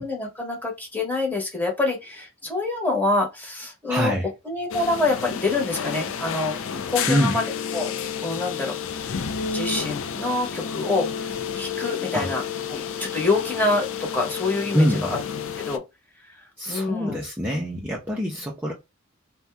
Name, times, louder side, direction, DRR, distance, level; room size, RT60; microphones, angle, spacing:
voice 1, 0.0-4.1 4.4-6.5 6.9-7.4 7.7-7.9 8.2-9.1 9.5-11.3 11.5-12.4 12.7-15.2 15.6-15.8 16.7-17.2, left 2 dB, 10° left, 1.0 m, -26 dB
voice 2, 3.9-4.3 7.1-7.4 12.1-12.3 14.7-15.1 16.6-18.7, equal, 10° right, 0.5 m, -24 dB
sound 1, 4.7-15.8, left 7 dB, 70° left, 0.4 m, -30 dB
2.7 x 2.2 x 3.3 m
head